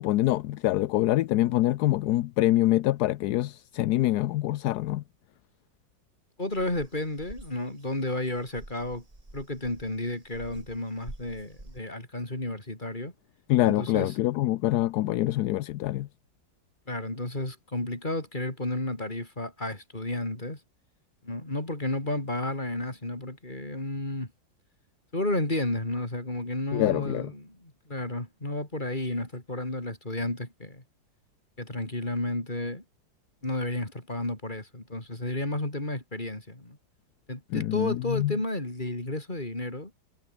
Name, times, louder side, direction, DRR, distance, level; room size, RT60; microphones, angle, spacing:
voice 1, 0.0-5.0 13.5-16.1 26.7-27.3 37.5-38.3, left 15 dB, 70° left, 1.0 m, -25 dB
voice 2, 6.4-9.1 9.3-13.1 13.6-14.1 16.9-20.6 21.2-24.3 25.1-30.8 31.6-32.8 33.4-36.8 37.3-39.9, left 1 dB, 25° left, 5.3 m, -32 dB
sound 1, 6.5-11.8, right 1 dB, 20° right, 3.5 m, -47 dB
omnidirectional pair, 2.0 m